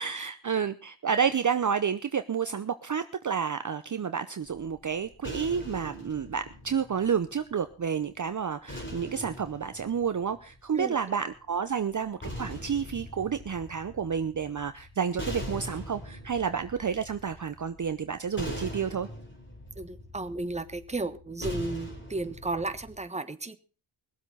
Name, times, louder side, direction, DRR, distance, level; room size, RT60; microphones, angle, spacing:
voice 1, 0.0-19.1, right 7 dB, 40° right, 10 dB, 0.8 m, -30 dB
sound 1, 4.4-7.7 8.7-10.9 11.9-23.0, equal, 25° left, 4.0 m, -42 dB
voice 2, 19.8-23.6, right 2 dB, 15° right, 10 dB, 1.2 m, -34 dB
20.5 x 8.1 x 5.6 m, 0.37 s
wide cardioid pair, 95°, 49 cm